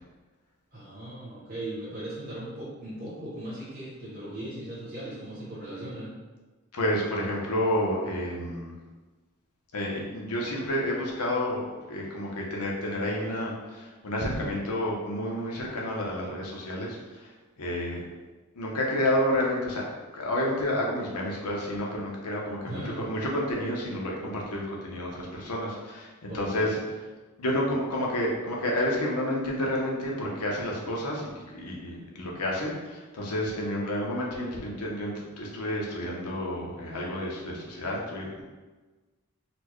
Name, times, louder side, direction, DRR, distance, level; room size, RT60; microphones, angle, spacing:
voice 1, 0.7-6.1 22.6-23.0 26.3-26.8, right 1 dB, 40° right, -11 dB, 0.9 m, -38 dB
voice 2, 6.7-8.7 9.7-17.3 17.6-18.0 18.5-19.8 20.1-26.8 27.4-31.3 31.5-38.4, left 1 dB, 90° left, -2 dB, 0.8 m, -30 dB
4.2 x 2.2 x 3.0 m, 1.3 s
head